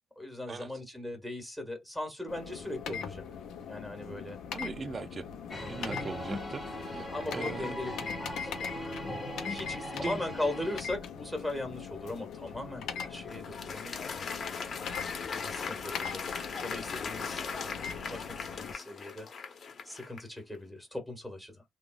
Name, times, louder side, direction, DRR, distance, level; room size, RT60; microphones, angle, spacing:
voice 1, 0.2-3.2 3.7-4.4 6.8-8.6 9.5-14.0 15.3-19.3 19.9-21.6, left 1 dB, ahead, 1.6 m, -39 dB
sound 1, 2.3-18.7, left 7 dB, 80° left, 0.7 m, -41 dB
voice 2, 4.5-5.3 5.7-7.1 7.3-7.8 9.9-10.2, right 4 dB, 40° right, 0.5 m, -40 dB
Vietnamese Karaoke, 5.5-10.8, equal, 20° left, 1.2 m, -39 dB
Applause, 12.8-20.4, left 5 dB, 50° left, 1.0 m, -39 dB
3.6 x 2.4 x 2.4 m
cardioid pair, 90°, 0 cm